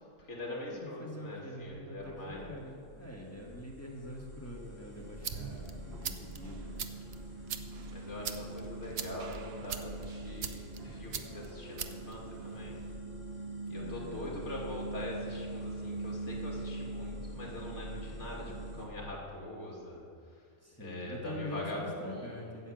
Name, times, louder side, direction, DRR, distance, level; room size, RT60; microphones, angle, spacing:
voice 1, 0.2-2.6 7.9-12.8 13.7-20.4 20.8-22.4, left 1 dB, 60° left, -3 dB, 2.8 m, -43 dB
voice 2, 0.7-2.1 2.4-6.8 8.1-8.6 13.6-14.3 20.6-22.7, left 1 dB, 10° left, -2 dB, 1.5 m, -45 dB
sound 1, 1.7-18.8, right 1 dB, 30° left, 3.0 m, -43 dB
sound 2, 4.9-13.0, right 7 dB, 55° right, 0.8 m, -43 dB
9.6 x 8.2 x 7.6 m, 2.2 s
omnidirectional pair, 1.4 m